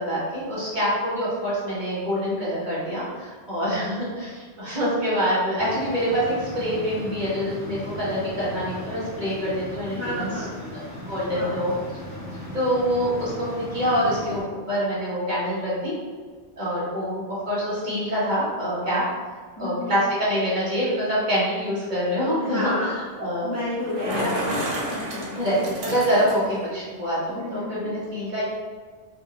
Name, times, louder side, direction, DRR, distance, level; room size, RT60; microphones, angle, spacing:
voice 1, 0.0-10.3 11.1-11.7 12.5-15.9 16.6-19.0 19.6-22.9 23.2-23.5 24.1-24.3 25.4-28.4, equal, 40° right, -9 dB, 1.4 m, -25 dB
sound 1, 5.6-14.4, left 1 dB, 85° left, 1.3 m, -37 dB
voice 2, 9.9-10.5 11.3-11.6 19.6-19.9 22.4-23.0 23.4-24.4 24.9-25.4 27.3-27.9, left 1 dB, 20° left, -8 dB, 0.5 m, -31 dB
Bicycle, 23.7-26.6, right 1 dB, 90° right, 1.1 m, -30 dB
3.8 x 2.6 x 2.8 m, 1.5 s
omnidirectional pair, 1.2 m